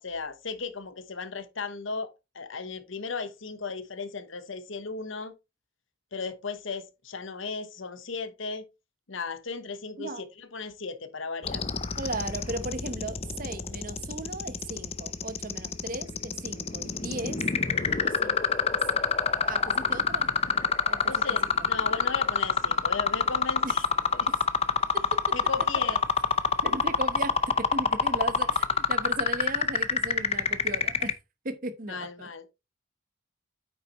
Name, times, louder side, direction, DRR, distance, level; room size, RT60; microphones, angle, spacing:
voice 1, 0.0-5.3 6.1-8.6 9.1-11.6 21.1-23.8 24.1-24.3 25.3-26.0 31.9-32.4, left 4 dB, 70° left, 1.0 m, -36 dB
sound 1, 11.4-31.1, left 6 dB, 30° left, 0.5 m, -25 dB
voice 2, 12.0-17.4 17.9-18.4 18.9-19.1 19.4-20.3 20.9-21.1 21.4-21.5 23.6-23.8 24.9-25.2 26.6-31.1 31.4-32.3, right 2 dB, 40° right, 0.9 m, -36 dB
8.9 x 6.1 x 3.0 m
head